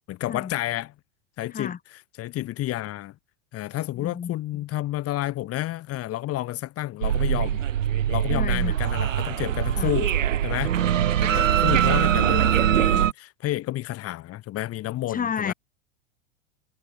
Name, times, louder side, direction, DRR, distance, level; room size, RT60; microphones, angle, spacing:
voice 1, 0.1-0.9 1.4-3.1 3.5-7.6 8.1-10.1 10.4-10.8 11.2-15.5, left 15 dB, 40° left, 4.8 m, -30 dB
voice 2, 4.0-4.6 8.3-8.8 9.8-9.9 11.3-11.5 15.1-15.5, left 7 dB, 20° left, 4.5 m, -32 dB
sound 1, 7.0-13.1, right 10 dB, 85° right, 1.2 m, -22 dB
hypercardioid pair, 105°, 38 cm